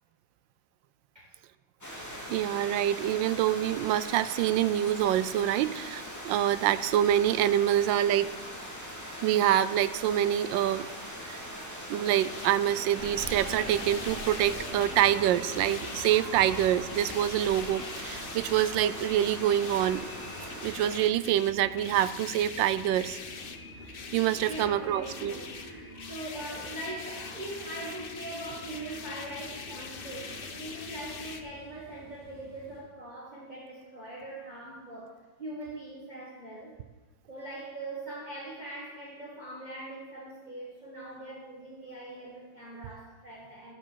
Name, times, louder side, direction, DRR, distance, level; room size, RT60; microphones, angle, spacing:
sound 1, 1.8-21.0, equal, 10° left, 2.4 m, -41 dB
voice 1, 2.3-8.4 9.2-10.9 11.3-11.4 11.9-20.1 20.6-23.2 24.1-25.3, right 11 dB, 80° right, 14 dB, 1.3 m, -26 dB
sound 2, 12.0-31.4, left 4 dB, 45° left, 0.7 m, -43 dB
Subway metro underground, 12.9-32.8, right 2 dB, 45° right, 3.1 m, -47 dB
voice 2, 24.5-35.1 35.4-36.7 37.3-43.7, right 1 dB, 20° right, -6 dB, 2.3 m, -41 dB
12.5 x 7.4 x 7.4 m, 1.2 s
omnidirectional pair, 2.1 m